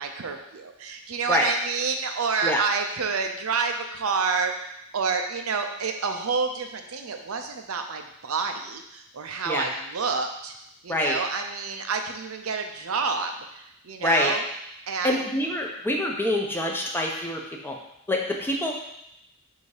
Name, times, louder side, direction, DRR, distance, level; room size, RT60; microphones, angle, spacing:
voice 1, 0.0-4.5 4.9-10.5 10.8-14.4 14.9-15.2, right 5 dB, 90° right, 5 dB, 0.7 m, -28 dB
voice 2, 14.0-14.3 15.0-17.8 18.1-18.8, left 1 dB, 10° left, 0 dB, 0.8 m, -26 dB
6.9 x 2.8 x 4.8 m, 0.81 s
head